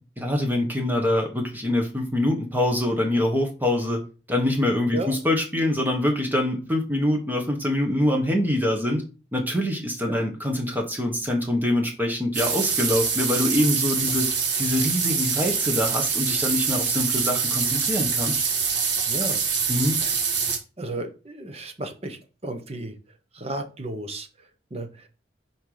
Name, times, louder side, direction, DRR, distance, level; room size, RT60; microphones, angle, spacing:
voice 1, 0.2-4.0 4.3-9.0 9.3-14.3 14.6-18.4 19.7-20.0, left 1 dB, 10° right, 3 dB, 1.4 m, -24 dB
sound 1, 12.3-20.6, right 6 dB, 85° right, 1.6 m, -25 dB
voice 2, 19.1-19.4 20.0-20.1 20.8-22.9 23.3-25.1, right 2 dB, 35° right, 7 dB, 1.0 m, -34 dB
5.8 x 4.5 x 5.0 m, 0.34 s
head